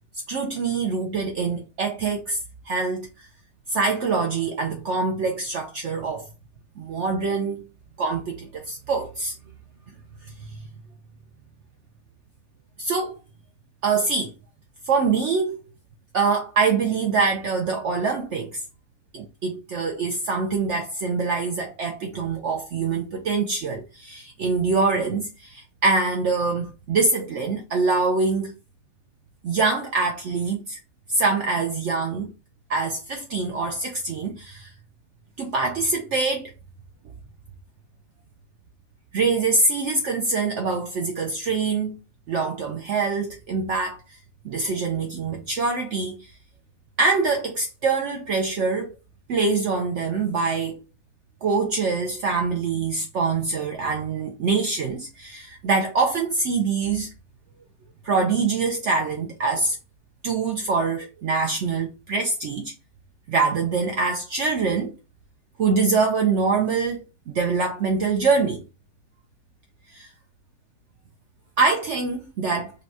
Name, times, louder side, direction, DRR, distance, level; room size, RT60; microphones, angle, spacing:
voice 1, 0.3-2.4 2.7-3.3 3.7-6.3 6.8-7.7 8.0-9.3 10.4-10.6 12.8-13.1 13.8-14.3 14.9-15.6 16.1-18.6 19.1-28.5 29.4-30.8 31.1-32.3 32.7-34.7 35.4-36.5 39.1-41.9 42.3-44.0 44.4-46.3 47.0-48.9 49.3-50.8 51.4-57.1 58.0-59.8 60.2-62.7 63.3-64.9 65.6-68.6 69.9-70.1 71.6-72.7, right 4 dB, 65° right, 0.8 m, -24 dB
5.3 x 2.2 x 2.7 m
omnidirectional pair, 1.5 m